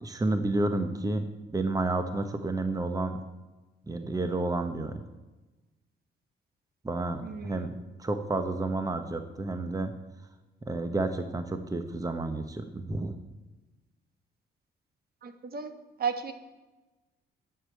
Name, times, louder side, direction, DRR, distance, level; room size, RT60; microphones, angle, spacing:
voice 1, 0.0-3.2 3.9-5.0 6.8-7.7 8.0-9.9 10.6-13.2, right 2 dB, 15° right, 8 dB, 1.0 m, -30 dB
voice 2, 7.2-7.7 15.2-15.7 16.0-16.3, right 6 dB, 50° right, 8 dB, 1.4 m, -34 dB
11.0 x 6.7 x 8.3 m, 1.1 s
cardioid pair, 90°, 20 cm